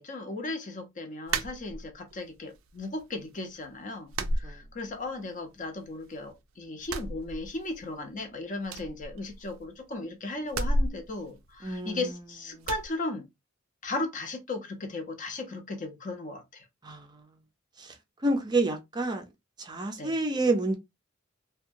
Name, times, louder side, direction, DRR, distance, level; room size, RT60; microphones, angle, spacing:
voice 1, 0.0-13.3 13.8-16.6 20.0-20.2, left 2 dB, 40° left, 0.6 m, -36 dB
sound 1, 1.3-2.2 2.6-3.3 3.5-3.7 4.1-5.2 5.5-6.4 6.8-7.9 8.2-8.3 8.6-9.8 10.5-12.1 12.6-12.9, right 1 dB, 90° right, 0.4 m, -33 dB
voice 2, 11.6-12.1 12.5-12.7 16.8-17.2 17.8-17.9 18.2-19.3 19.6-20.7, right 2 dB, 20° right, 0.4 m, -29 dB
2.7 x 2.2 x 2.5 m
head